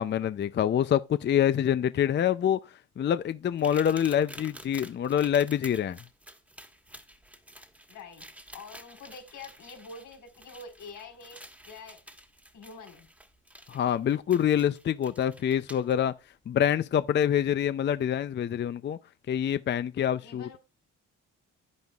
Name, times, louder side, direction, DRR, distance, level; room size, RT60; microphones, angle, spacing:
voice 1, 0.0-2.6 3.0-6.0 13.7-16.1 16.5-19.0 19.3-20.6, left 9 dB, 35° left, 0.4 m, -26 dB
sound 1, 3.6-15.9 17.2-17.3 17.9-18.0, right 1 dB, 5° right, 1.5 m, -50 dB
voice 2, 7.9-8.3 8.5-11.4 11.7-12.0 12.5-13.1 20.2-20.6, left 4 dB, 85° left, 4.5 m, -46 dB
10.5 x 9.3 x 2.3 m
cardioid pair, 90°, 30 cm